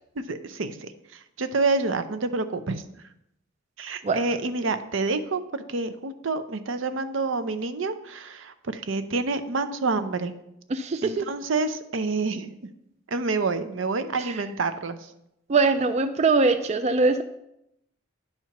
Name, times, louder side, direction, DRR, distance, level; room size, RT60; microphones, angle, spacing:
voice 1, 0.3-2.8 3.8-10.3 11.0-12.5 13.1-15.1, right 3 dB, 75° right, 10 dB, 0.6 m, -28 dB
voice 2, 10.7-11.2 15.5-17.2, right 3 dB, 35° right, 8 dB, 0.3 m, -22 dB
10.0 x 4.4 x 5.8 m, 0.82 s
head